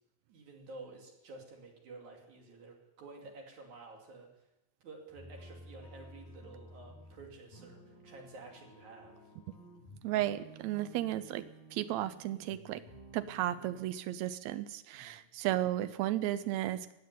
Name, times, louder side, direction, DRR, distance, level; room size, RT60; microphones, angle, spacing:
voice 1, 0.3-4.5 4.8-9.3 14.9-15.3, right 3 dB, 60° right, 0 dB, 3.9 m, -51 dB
sound 1, 5.1-13.8, right 1 dB, 75° left, 5.8 m, -54 dB
voice 2, 10.0-11.5 11.7-12.8 13.1-16.9, right 13 dB, 80° right, 12 dB, 1.6 m, -34 dB
16.0 x 8.8 x 9.4 m, 0.92 s
omnidirectional pair, 4.0 m